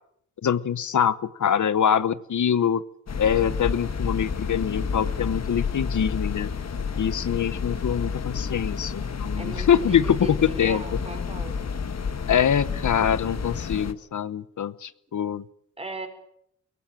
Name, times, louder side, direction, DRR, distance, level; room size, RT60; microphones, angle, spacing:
voice 1, 0.4-2.8 3.2-6.5 7.0-10.8 12.3-15.4, left 8 dB, 80° left, 16 dB, 0.8 m, -24 dB
sound 1, 3.1-13.9, left 5 dB, 60° left, 1.5 m, -30 dB
voice 2, 9.4-11.8 15.8-16.1, right 2 dB, 20° right, 6 dB, 4.7 m, -37 dB
22.5 x 18.0 x 9.0 m, 0.72 s
wide cardioid pair, 130°, 30 cm